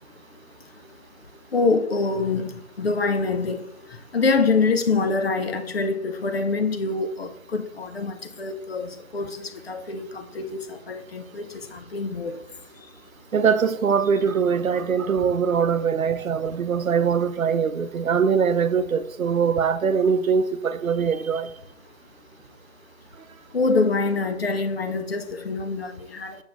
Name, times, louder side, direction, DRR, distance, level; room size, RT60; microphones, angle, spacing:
voice 1, 1.5-2.5 2.8-3.6 4.1-11.5 11.7-12.4 23.5-26.4, left 4 dB, 50° left, 0.7 m, -25 dB
voice 2, 13.3-21.5, right 6 dB, 85° right, 0.6 m, -22 dB
6.2 x 6.1 x 2.5 m
figure-of-eight pair, 150°, 40 cm